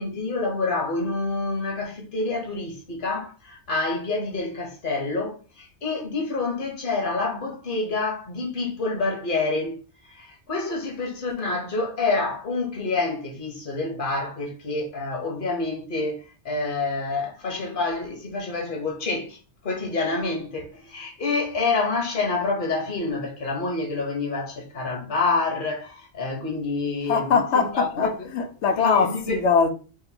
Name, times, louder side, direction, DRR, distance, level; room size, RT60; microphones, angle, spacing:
voice 1, 0.0-9.8 10.0-28.3 28.8-29.4, left 3 dB, 50° left, 1.2 m, -27 dB
voice 2, 27.1-28.1 28.3-29.7, left 5 dB, 85° left, 1.0 m, -21 dB
6.2 x 2.6 x 2.8 m
omnidirectional pair, 1.1 m